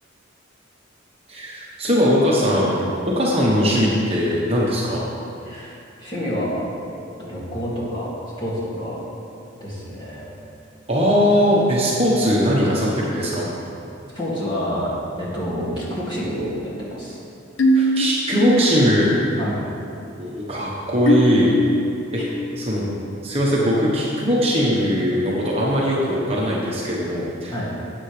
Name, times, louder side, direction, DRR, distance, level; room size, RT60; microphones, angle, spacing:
voice 1, 1.3-5.0 10.9-13.5 17.7-19.1 20.2-21.5 22.1-22.2 22.6-22.9 23.2-27.5, equal, 30° right, -5 dB, 1.2 m, -20 dB
voice 2, 5.4-5.7 6.0-6.6 7.2-8.1 8.4-9.0 9.6-10.3 14.1-14.9 15.2-17.2 19.4-19.6 22.2-22.3 22.7-22.9 27.5-27.7, equal, 25° left, -7 dB, 2.4 m, -28 dB
sound 1, 15.8-18.8 19.1-19.5 21.1-22.9, equal, 70° left, 0.8 m, -23 dB
14.0 x 8.2 x 3.4 m, 2.7 s
head